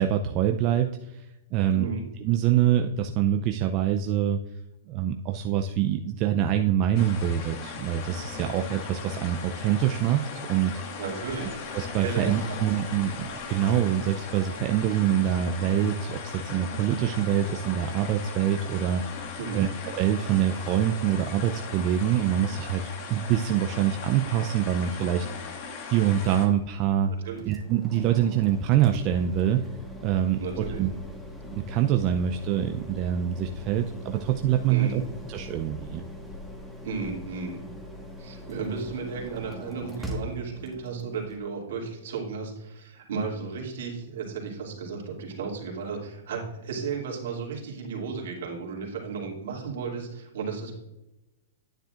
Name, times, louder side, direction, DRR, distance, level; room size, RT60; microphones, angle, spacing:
voice 1, 0.0-1.9 2.2-4.4 4.9-11.0 11.7-19.7 20.0-25.3 25.9-27.1 27.5-29.7 30.0-30.9 31.5-35.0 35.3-36.0, right 10 dB, 40° right, 5 dB, 0.5 m, -25 dB
voice 2, 1.7-2.0 11.0-11.6 12.0-12.6 19.4-19.7 27.2-27.5 30.4-30.8 34.7-35.0 36.8-37.6 38.2-50.8, right 5 dB, 70° right, -2 dB, 2.6 m, -34 dB
sound 1, 6.9-26.5, left 5 dB, 50° left, 1.6 m, -38 dB
sound 2, 26.2-41.4, left 1 dB, 5° left, 1.5 m, -41 dB
9.9 x 8.9 x 2.5 m, 0.95 s
hypercardioid pair, 130°, 0 cm